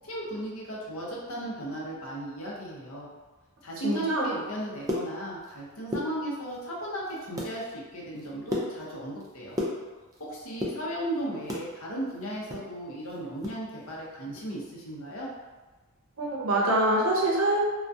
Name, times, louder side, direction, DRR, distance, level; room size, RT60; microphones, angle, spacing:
voice 1, 0.0-3.1 3.6-9.6 10.2-15.3, right 1 dB, 65° left, -4 dB, 0.6 m, -36 dB
voice 2, 3.8-4.3 16.2-17.6, right 1 dB, 70° right, -4 dB, 0.6 m, -25 dB
sound 1, 4.6-5.6 5.8-6.6 7.0-7.6 7.9-10.2 10.5-11.7 12.1-13.6 13.9-14.0 14.3-14.6 14.9-15.2, left 1 dB, 15° right, 0.3 m, -34 dB
2.3 x 2.1 x 2.5 m, 1.2 s
head